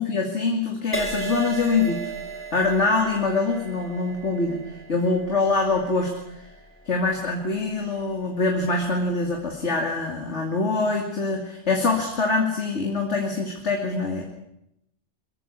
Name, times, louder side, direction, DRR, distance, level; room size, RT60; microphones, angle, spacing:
voice 1, 0.0-2.0 2.5-6.4 6.9-14.2, left 3 dB, 80° left, 2 dB, 3.0 m, -24 dB
Crash cymbal, 0.9-8.6 9.2-9.5, right 3 dB, 10° left, 2.7 m, -37 dB
23.5 x 14.5 x 9.7 m, 0.82 s
omnidirectional pair, 1.2 m